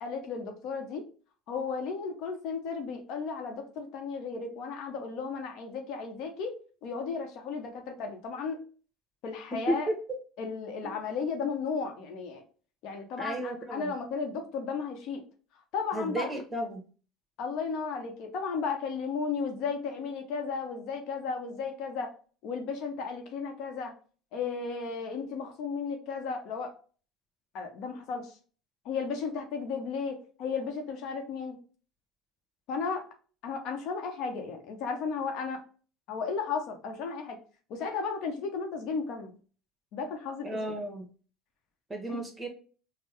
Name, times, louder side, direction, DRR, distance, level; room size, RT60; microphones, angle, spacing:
voice 1, 0.0-1.1 1.5-6.5 6.8-8.6 9.2-9.9 10.4-12.4 12.8-15.2 15.7-16.3 17.4-22.1 22.4-23.9 24.3-26.7 27.5-28.4 28.8-31.6 32.7-33.1 33.4-35.6 36.1-37.4 37.7-39.3 39.9-40.6 42.1-42.2, left 5 dB, 65° left, 4 dB, 0.7 m, -34 dB
voice 2, 9.7-10.2 10.8-10.9 13.2-13.9 15.9-16.8 40.4-41.1 41.9-42.5, right 1 dB, 15° right, 3 dB, 1.2 m, -33 dB
4.4 x 2.0 x 3.0 m, 0.39 s
hypercardioid pair, 70°, 0 cm